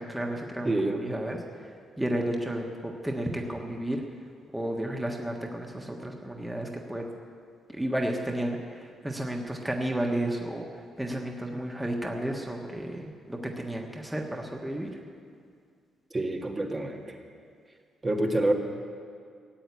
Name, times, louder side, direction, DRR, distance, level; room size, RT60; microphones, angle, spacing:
voice 1, 0.0-1.4 1.6-4.0 4.5-7.0 7.7-15.0, right 1 dB, 10° right, 1 dB, 1.5 m, -32 dB
voice 2, 0.6-1.0 16.1-17.2 18.0-18.5, right 2 dB, 30° right, 2 dB, 1.6 m, -27 dB
16.0 x 7.8 x 9.6 m, 2.2 s
cardioid pair, 90°, 0 cm